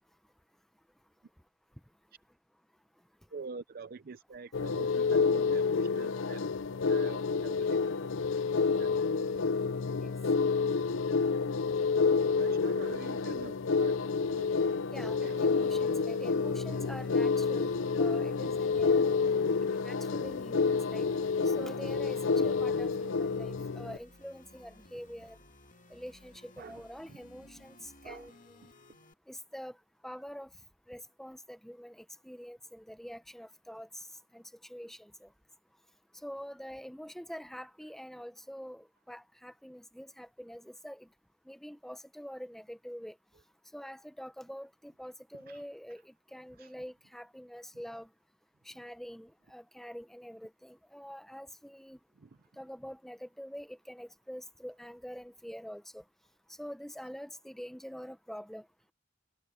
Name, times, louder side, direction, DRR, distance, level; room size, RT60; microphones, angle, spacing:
voice 1, 3.3-6.4 6.9-8.1 8.8-8.9 12.4-14.9 15.2-15.4 16.0-16.1 26.6-27.2 28.0-28.4 45.5-45.6 46.6-46.7 52.2-52.3, right 4 dB, 50° right, 0.5 m, -46 dB
sound 1, 4.5-24.0, left 4 dB, 80° left, 0.6 m, -29 dB
voice 2, 14.9-19.1 19.7-21.1 21.5-25.4 25.9-28.6 29.3-29.8 30.0-30.5 30.9-34.1 34.3-35.3 36.2-41.1 41.5-43.1 43.7-48.1 48.7-52.0 52.6-56.0 56.6-58.6, equal, ahead, 0.8 m, -45 dB
sound 2, 15.4-29.1, left 2 dB, 40° left, 2.1 m, -56 dB
head